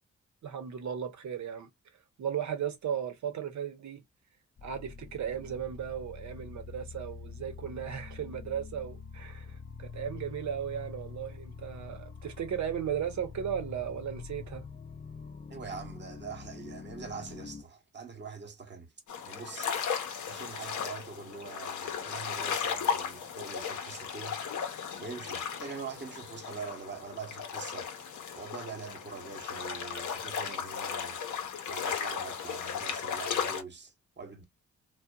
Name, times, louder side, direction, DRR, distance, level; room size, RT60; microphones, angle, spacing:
voice 1, 0.4-1.7 2.2-4.0 4.6-14.7, right 9 dB, 65° right, 0.8 m, -36 dB
sound 1, 4.6-17.6, left 5 dB, 25° left, 0.4 m, -45 dB
voice 2, 15.5-18.9 19.3-19.7 20.3-24.4 25.0-27.9 28.3-31.2 31.7-34.4, right 5 dB, 35° right, 1.0 m, -43 dB
sound 2, 19.1-33.6, left 7 dB, 75° left, 0.7 m, -36 dB
2.7 x 2.2 x 2.2 m
cardioid pair, 65°, 30 cm